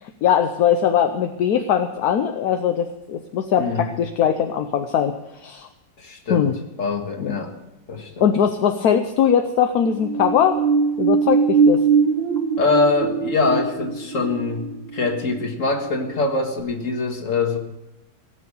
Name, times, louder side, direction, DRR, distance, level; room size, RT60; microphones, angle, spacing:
voice 1, 0.0-5.7 6.3-6.5 7.2-7.3 8.2-10.6 11.0-11.9, left 8 dB, 65° left, 7 dB, 1.2 m, -20 dB
voice 2, 6.0-6.5 6.8-7.5 7.9-8.2 12.6-14.6 14.9-17.6, left 3 dB, 45° left, 4 dB, 2.1 m, -23 dB
sound 1, 9.9-16.2 16.6-16.7, right 5 dB, 80° right, 1.7 m, -21 dB
17.5 x 7.0 x 8.4 m, 0.96 s
omnidirectional pair, 2.0 m